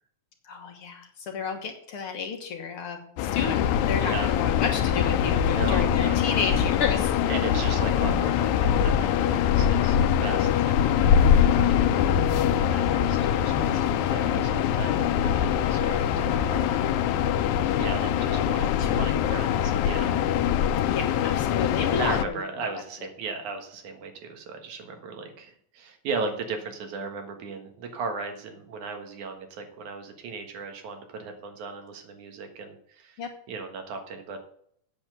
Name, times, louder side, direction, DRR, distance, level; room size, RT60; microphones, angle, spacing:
voice 1, 0.4-7.3 12.8-13.0 18.8-19.3 20.9-22.4 33.2-33.3, left 5 dB, 55° left, 4 dB, 1.8 m, -31 dB
sound 1, 3.2-22.2, left 9 dB, 85° left, 2.0 m, -23 dB
voice 2, 3.9-4.3 5.5-6.2 7.3-16.8 17.8-20.3 21.9-33.2 33.5-34.4, right 4 dB, 85° right, 5 dB, 3.0 m, -37 dB
8.5 x 7.7 x 6.7 m, 0.64 s
omnidirectional pair, 3.3 m